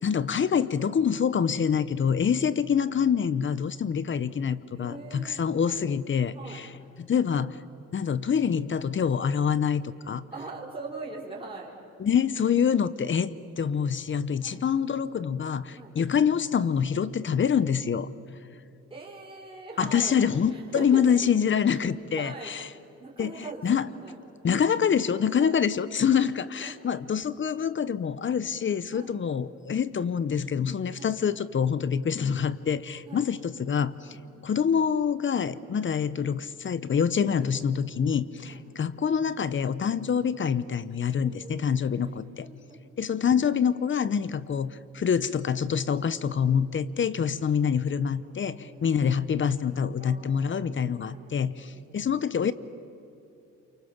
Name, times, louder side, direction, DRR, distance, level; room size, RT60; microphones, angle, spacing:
voice 1, 0.0-6.7 7.0-7.6 7.9-10.2 12.0-18.1 19.8-22.7 23.2-23.9 24.4-34.2 34.4-42.5 43.0-52.5, left 7 dB, 40° left, 17 dB, 0.9 m, -26 dB
voice 2, 4.3-5.8 6.3-6.6 10.3-11.7 14.4-14.6 15.7-15.9 18.9-20.1 20.5-21.1 22.1-22.6 23.0-23.6 24.0-24.1 25.4-25.6 26.1-26.3 26.6-26.7 28.9-29.2 31.0-31.1 33.1-33.2 34.1-34.2 38.4-38.6 41.2-43.1 48.5-49.1 50.0-50.8 51.1-51.4 51.7-51.9, right 3 dB, 15° right, -3 dB, 4.5 m, -42 dB
27.5 x 24.5 x 7.3 m, 2.8 s
cardioid pair, 90°, 30 cm